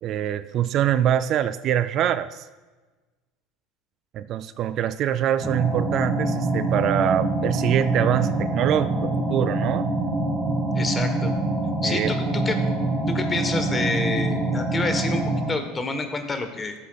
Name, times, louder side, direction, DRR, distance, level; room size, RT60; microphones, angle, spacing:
voice 1, 0.0-2.4 4.1-9.9 11.8-12.1, right 10 dB, 50° right, 13 dB, 0.3 m, -24 dB
sound 1, 5.4-15.5, right 2 dB, 15° right, 1.4 m, -25 dB
voice 2, 10.7-11.3 11.8-12.6 13.1-16.7, left 3 dB, 20° left, 7 dB, 1.1 m, -28 dB
13.5 x 7.3 x 2.3 m, 1.2 s
hypercardioid pair, 90°, 0 cm